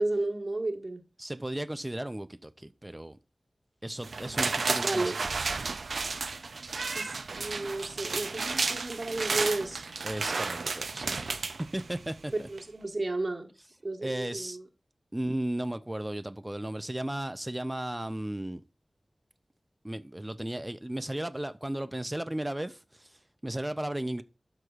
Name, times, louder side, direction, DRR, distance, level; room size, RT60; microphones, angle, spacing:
voice 1, 0.0-1.0 4.5-5.2 6.9-9.8 12.5-13.5 13.8-14.6, right 2 dB, 55° right, 1.3 m, -33 dB
voice 2, 1.2-3.2 3.8-5.2 10.0-11.4 11.7-12.5 14.0-14.6 15.1-18.6 19.8-24.2, right 1 dB, 20° right, 0.4 m, -35 dB
sound 1, 4.0-12.2 12.6-12.7, right 4 dB, 90° right, 0.4 m, -32 dB
12.5 x 4.8 x 2.4 m
wide cardioid pair, 50°, 0 cm